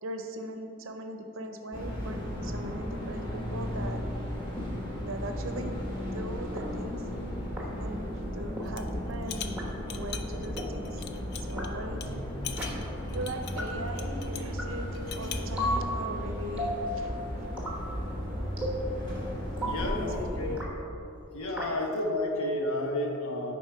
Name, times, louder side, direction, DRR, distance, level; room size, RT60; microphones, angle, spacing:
voice 1, 0.0-4.0 5.0-7.0 7.8-9.6 9.9-11.0 11.5-12.2 13.1-17.1 19.6-20.4, right 1 dB, 70° right, 6 dB, 0.6 m, -39 dB
sound 1, 1.7-20.6, equal, 20° left, 1.4 m, -35 dB
sound 2, 4.6-4.7 5.6-5.7 6.6-6.7 7.6-7.7 8.6-8.7 9.6-9.7 10.6-10.7 11.6-11.7 12.6-12.7 13.6-13.7 14.6-14.7 15.6-15.8 16.6-16.8 17.6-17.8 18.6-18.8 19.6-19.8 20.6-20.7 21.6-21.7, equal, 5° right, 1.0 m, -32 dB
sound 3, 8.6-8.9 9.2-11.7 12.0-12.1 12.4-14.5 14.9-15.5, left 8 dB, 50° left, 0.4 m, -41 dB
voice 2, 19.7-20.6 21.3-23.5, left 1 dB, 85° left, 1 dB, 1.1 m, -31 dB
10.5 x 4.1 x 4.6 m, 2.8 s
head